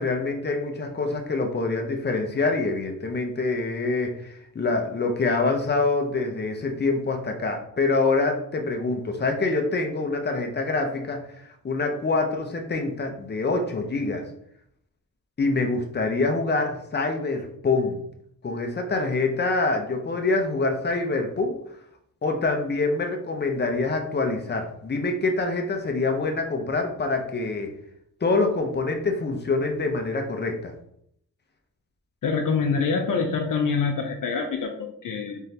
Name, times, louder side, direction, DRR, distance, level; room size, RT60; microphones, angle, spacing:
voice 1, 0.0-14.2 15.4-18.0 18.4-21.6 22.2-27.7 28.2-30.7, left 3 dB, 30° left, 4 dB, 0.7 m, -25 dB
voice 2, 32.2-35.4, left 5 dB, 70° left, 4 dB, 0.6 m, -25 dB
3.7 x 3.2 x 2.8 m, 0.70 s
cardioid pair, 80°, 34 cm